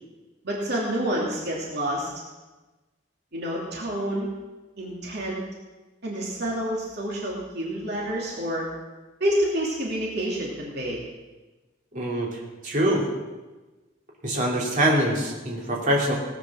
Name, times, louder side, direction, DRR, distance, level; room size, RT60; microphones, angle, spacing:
voice 1, 0.4-2.1 3.3-4.3 4.8-5.4 6.0-8.7 9.2-11.0, right 1 dB, 60° right, -3 dB, 2.9 m, -28 dB
voice 2, 11.9-13.1 14.2-16.1, right 1 dB, 45° right, -3 dB, 3.1 m, -24 dB
18.0 x 9.2 x 6.3 m, 1.2 s
head